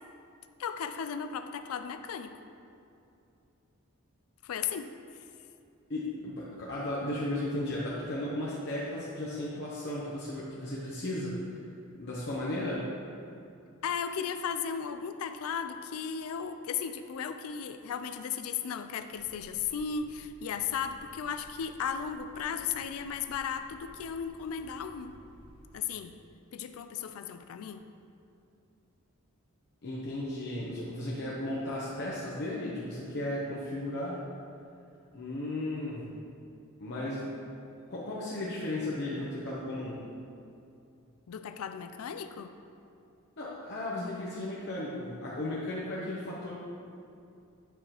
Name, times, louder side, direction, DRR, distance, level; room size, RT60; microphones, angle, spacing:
voice 1, 0.6-2.3 4.4-4.9 13.8-25.2 25.7-26.1 26.5-27.8 41.3-42.5, left 7 dB, 75° left, 9 dB, 0.3 m, -35 dB
voice 2, 5.9-11.4 11.9-12.9 29.8-34.2 35.1-36.2 36.8-37.3 37.9-40.0 43.4-46.5, left 1 dB, 50° left, -6 dB, 0.8 m, -35 dB
sound 1, 19.1-25.8, equal, 70° right, 1.4 m, -56 dB
9.0 x 4.7 x 3.0 m, 2.6 s
head